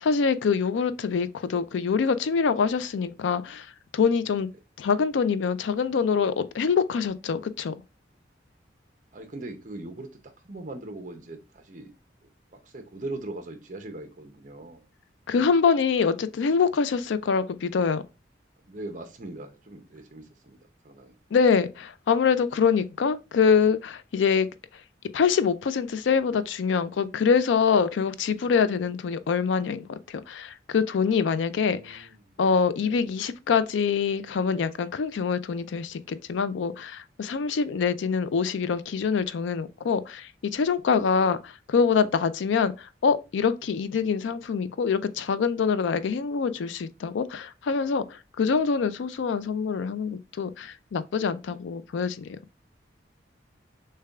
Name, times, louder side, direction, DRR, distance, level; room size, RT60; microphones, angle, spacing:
voice 1, 0.0-3.7 3.9-4.5 4.8-7.7 15.3-18.0 21.3-24.5 25.1-32.1 32.4-52.4, left 6 dB, 80° left, 0.4 m, -25 dB
voice 2, 9.1-11.9 12.5-14.8 18.6-20.6 20.8-21.2 31.5-32.4 32.8-33.1 41.0-41.4, right 2 dB, 40° right, 0.6 m, -40 dB
6.5 x 2.2 x 2.3 m
head